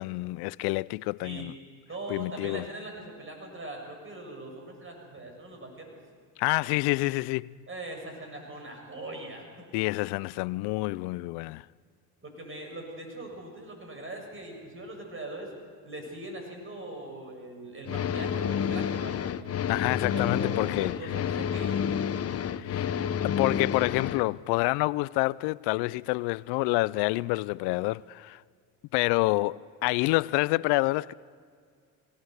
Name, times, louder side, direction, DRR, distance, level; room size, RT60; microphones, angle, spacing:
voice 1, 0.0-1.5 2.1-2.7 6.4-7.5 9.7-11.7 19.7-21.1 22.5-22.9 23.2-28.4 28.9-31.1, left 22 dB, 70° left, 0.5 m, -28 dB
voice 2, 1.9-6.0 7.7-9.4 12.2-15.5 15.8-19.3 20.1-21.9, right 1 dB, 30° right, 7.3 m, -41 dB
sound 1, 17.9-24.2, left 8 dB, 35° left, 0.8 m, -29 dB
21.5 x 18.0 x 8.0 m
supercardioid pair, 75°, 42 cm